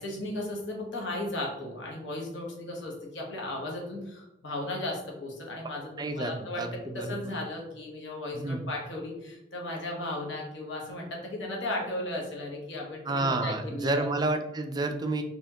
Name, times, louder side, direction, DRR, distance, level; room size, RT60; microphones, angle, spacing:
voice 1, 0.0-14.1, left 1 dB, 75° left, -1 dB, 1.1 m, -36 dB
voice 2, 6.0-7.3 8.3-8.6 13.1-15.2, right 2 dB, 20° right, 7 dB, 0.3 m, -30 dB
4.1 x 2.9 x 2.8 m, 0.93 s
head